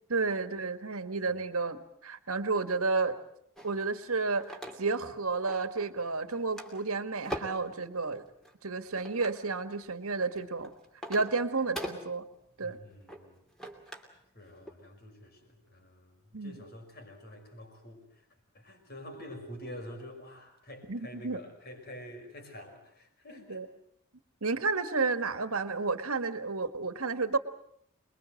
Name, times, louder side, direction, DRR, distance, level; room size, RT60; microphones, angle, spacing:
voice 1, 0.1-3.2 3.6-8.2 8.6-10.7 11.1-12.3 12.6-12.8 16.3-16.6 20.9-21.4 23.5-23.7 24.4-27.4, right 4 dB, 75° right, 10 dB, 1.7 m, -31 dB
sound 1, 3.6-5.1 5.5-6.0 6.3-7.7 8.4-9.4 10.1-14.2 14.5-14.7, equal, ahead, 2.7 m, -42 dB
voice 2, 12.6-13.4 14.3-18.3 18.5-23.6, left 1 dB, 45° left, 5 dB, 5.5 m, -47 dB
26.5 x 22.0 x 7.8 m, 0.68 s
head